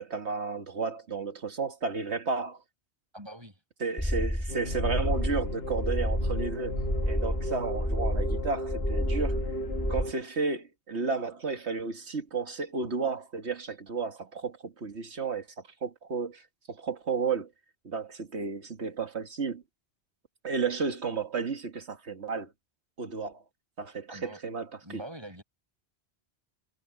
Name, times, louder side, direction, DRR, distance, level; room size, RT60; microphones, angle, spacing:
voice 1, 0.0-2.6 3.8-6.7 7.0-9.4 9.9-15.5 15.8-16.4 16.7-17.5 17.8-19.6 20.4-22.5 23.0-23.4 23.8-25.0, right 4 dB, 90° right, 2.1 m, -32 dB
voice 2, 3.1-3.6 24.1-24.4 24.8-25.4, right 1 dB, 25° right, 7.9 m, -43 dB
sound 1, 4.0-10.0, equal, 10° left, 5.1 m, -30 dB
sound 2, 4.5-10.1, left 1 dB, 65° left, 1.5 m, -36 dB
omnidirectional pair, 1.1 m